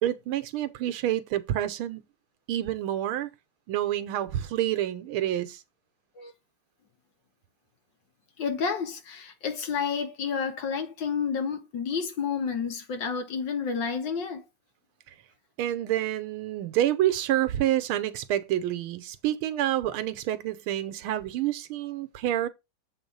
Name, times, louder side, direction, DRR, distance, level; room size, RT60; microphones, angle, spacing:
voice 1, 0.0-2.0 2.5-3.3 3.7-5.6 15.6-22.5, right 12 dB, 90° right, 1.6 m, -28 dB
voice 2, 8.4-14.4, left 6 dB, 65° left, 1.8 m, -30 dB
7.8 x 3.9 x 5.3 m
omnidirectional pair, 2.3 m